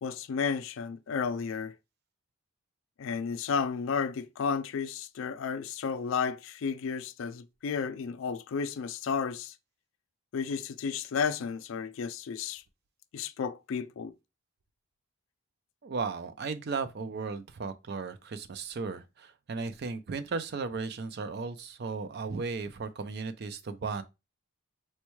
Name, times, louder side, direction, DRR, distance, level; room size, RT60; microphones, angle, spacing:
voice 1, 0.0-1.7 3.0-9.5 10.3-12.6 13.1-14.1, left 6 dB, 60° left, 0.3 m, -32 dB
voice 2, 15.8-24.0, right 4 dB, 45° right, 0.4 m, -35 dB
4.3 x 2.2 x 3.0 m
head